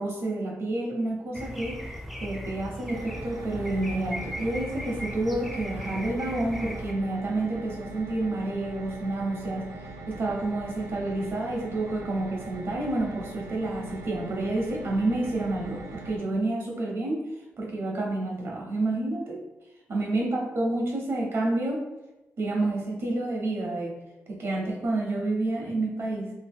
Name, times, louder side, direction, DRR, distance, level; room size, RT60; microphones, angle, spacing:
voice 1, 0.0-1.8 2.2-9.7 10.1-17.2 17.6-19.4 19.9-21.9 22.4-24.0 24.3-26.3, right 2 dB, 55° right, -1 dB, 0.9 m, -29 dB
sound 1, 1.3-6.9, equal, ahead, 0.4 m, -38 dB
sound 2, 2.9-16.2, right 2 dB, 85° right, 0.4 m, -42 dB
2.8 x 2.5 x 3.5 m, 1.0 s
cardioid pair, 105°, 5 cm